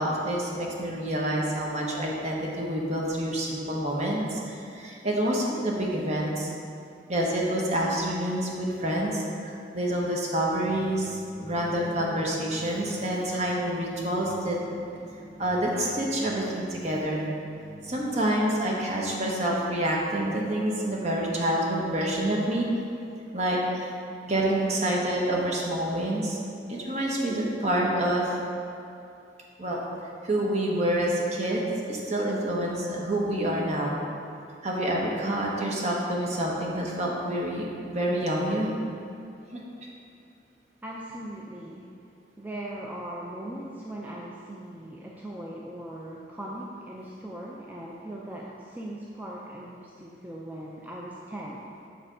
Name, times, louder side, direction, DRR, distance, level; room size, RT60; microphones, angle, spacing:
voice 1, 0.0-6.5 7.1-11.1 11.4-14.6 15.4-17.2 17.8-22.7 23.3-23.9 24.3-26.4 26.7-28.4 29.6-29.8 30.2-33.9 34.6-38.7, right 1 dB, 40° right, -2 dB, 1.0 m, -27 dB
Keyboard (musical), 10.6-18.5, right 1 dB, 25° left, 1.2 m, -45 dB
voice 2, 40.8-41.9 42.4-51.9, right 1 dB, 10° right, -4 dB, 0.4 m, -39 dB
6.7 x 3.4 x 6.0 m, 2.6 s
head